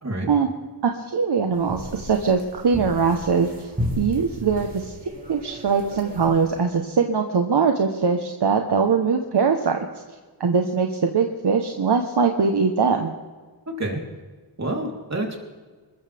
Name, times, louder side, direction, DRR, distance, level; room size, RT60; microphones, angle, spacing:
voice 1, 0.8-3.7 4.0-9.8 10.4-13.1, right 5 dB, 65° right, 4 dB, 1.3 m, -22 dB
sound 1, 1.5-6.6, left 1 dB, 20° right, 4.2 m, -34 dB
voice 2, 13.7-14.0 14.6-15.4, right 1 dB, 35° right, 0 dB, 3.7 m, -28 dB
25.5 x 14.0 x 3.6 m, 1.4 s
wide cardioid pair, 90°, 44 cm